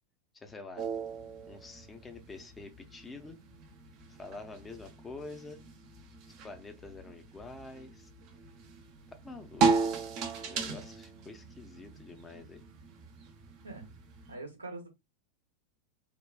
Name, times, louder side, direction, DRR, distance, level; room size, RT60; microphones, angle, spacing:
voice 1, 0.3-0.9 1.5-3.4 4.1-5.6 6.4-8.1 9.1-10.0 10.5-12.6, left 3 dB, 15° left, 0.6 m, -47 dB
sound 1, 0.8-14.3, right 4 dB, 40° right, 0.6 m, -36 dB
voice 2, 14.3-14.9, right 2 dB, 80° right, 0.9 m, -43 dB
3.5 x 2.2 x 2.4 m
figure-of-eight pair, 90°, 0 cm